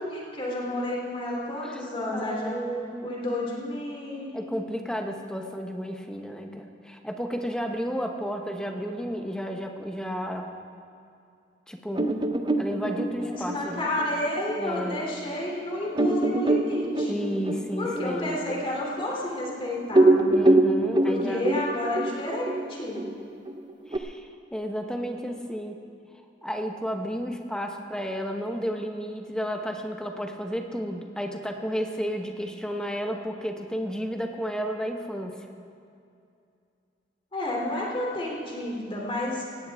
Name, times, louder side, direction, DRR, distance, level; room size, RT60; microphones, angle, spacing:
voice 1, 0.0-2.6 3.0-4.3 13.2-17.1 17.8-20.5 21.1-23.0 37.3-39.7, left 1 dB, 30° left, -3 dB, 2.9 m, -31 dB
voice 2, 2.1-3.2 4.3-10.5 11.7-12.1 12.6-13.9 14.6-15.0 17.1-18.5 20.3-21.5 23.9-25.8 26.4-35.4, equal, 5° left, 3 dB, 1.0 m, -32 dB
sound 1, 11.9-15.0 15.5-15.6 15.9-19.6 19.8-24.0, right 2 dB, 25° right, 0.6 m, -24 dB
17.5 x 17.0 x 3.5 m, 2.5 s
head